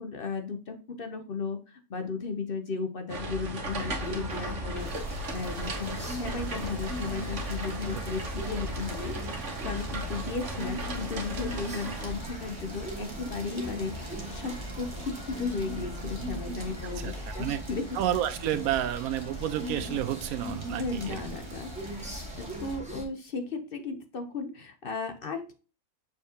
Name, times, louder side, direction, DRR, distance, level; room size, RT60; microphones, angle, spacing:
voice 1, 0.0-17.9 20.8-25.5, left 4 dB, 50° left, 7 dB, 0.8 m, -35 dB
sound 1, 3.1-12.1, right 1 dB, 55° right, 1.5 m, -36 dB
sound 2, 3.6-23.0, equal, 5° right, 1.5 m, -39 dB
sound 3, 4.8-22.8, right 1 dB, 20° right, 1.4 m, -45 dB
voice 2, 17.9-21.2, right 11 dB, 85° right, 12 dB, 1.1 m, -30 dB
6.8 x 5.0 x 2.7 m, 0.35 s
omnidirectional pair, 1.5 m